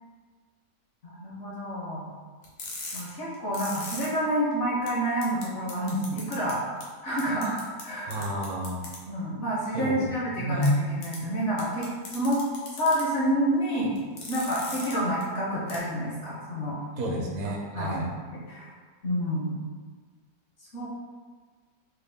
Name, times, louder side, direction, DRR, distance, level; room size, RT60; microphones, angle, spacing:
voice 1, 1.0-2.1 2.9-6.6 7.0-7.6 7.8-8.3 9.1-12.4 12.7-14.0 14.3-16.8 17.1-17.2 17.7-18.7 19.0-19.6 20.7-20.9, equal, 60° left, -5 dB, 0.8 m, -29 dB
sound 1, 2.4-4.1 4.5-4.6 4.9-5.0 5.2-5.4 5.7-6.5 6.8-6.9 7.2-7.8 8.1-9.0 10.6-10.7 11.0-11.2 11.6-13.0 14.0-14.9 15.2-15.3 15.7-15.8, left 3 dB, 75° left, 1.3 m, -38 dB
voice 2, 8.1-8.8 9.7-10.1 10.4-10.7 17.0-18.1, equal, 75° right, -1 dB, 1.0 m, -29 dB
4.0 x 2.3 x 3.4 m, 1.5 s
omnidirectional pair, 1.7 m